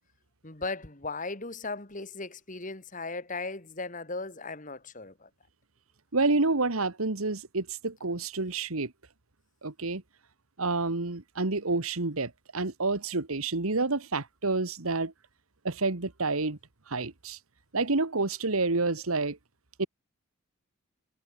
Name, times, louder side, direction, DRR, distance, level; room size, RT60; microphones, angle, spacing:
voice 1, 0.4-5.3, left 3 dB, 35° left, 2.1 m, -37 dB
voice 2, 6.1-8.9 9.6-10.0 10.6-15.1 15.6-16.6 16.9-17.4 17.7-19.4 19.8-19.9, right 3 dB, 80° right, 1.7 m, -29 dB
head